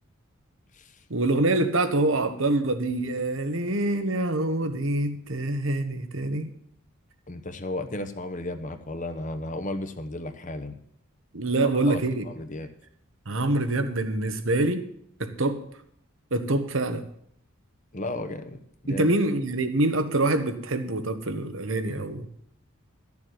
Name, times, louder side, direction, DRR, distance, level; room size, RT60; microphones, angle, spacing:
voice 1, 1.1-6.5 11.3-12.2 13.3-14.9 15.2-15.6 16.3-17.1 18.9-22.3, right 2 dB, 65° right, 1.2 m, -25 dB
voice 2, 7.3-10.8 11.6-12.7 17.9-19.1, left 1 dB, 35° left, 1.0 m, -34 dB
13.0 x 7.2 x 8.1 m
head